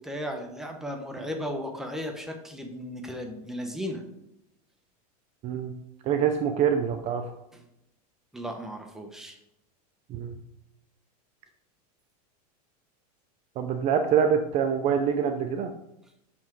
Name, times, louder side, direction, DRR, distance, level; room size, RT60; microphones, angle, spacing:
voice 1, 0.0-4.0 7.5-7.6 8.3-9.4, equal, ahead, 3 dB, 1.0 m, -35 dB
voice 2, 6.0-7.3 10.1-10.3 13.6-15.7, right 7 dB, 35° right, 6 dB, 0.6 m, -25 dB
6.1 x 6.1 x 4.6 m, 0.84 s
supercardioid pair, 140°, 20 cm